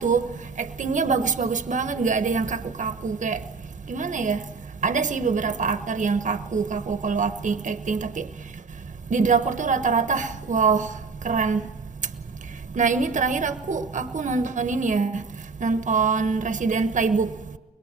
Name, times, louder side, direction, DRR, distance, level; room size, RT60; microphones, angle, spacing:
voice 1, 0.0-17.6, right 5 dB, 70° right, 1.2 m, -25 dB
24.5 x 22.0 x 7.7 m
wide cardioid pair, 140°, 13 cm